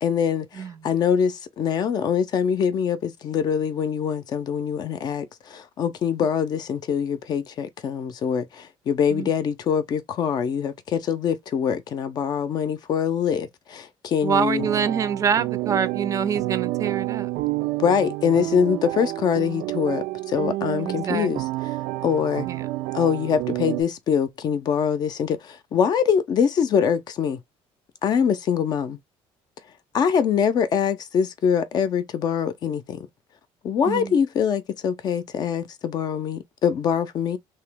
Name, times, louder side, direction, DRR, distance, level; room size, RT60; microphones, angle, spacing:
voice 1, 0.0-14.7 17.8-21.8 22.0-22.5 22.9-27.4 28.0-29.0 29.9-33.1 33.6-37.4, left 7 dB, 40° left, 0.5 m, -24 dB
voice 2, 14.2-17.3 20.8-21.3 22.5-22.6 33.8-34.2, right 7 dB, 30° right, 0.5 m, -25 dB
sound 1, 14.6-23.8, right 19 dB, 85° right, 0.4 m, -29 dB
2.9 x 2.8 x 3.3 m
cardioid pair, 165°, 10 cm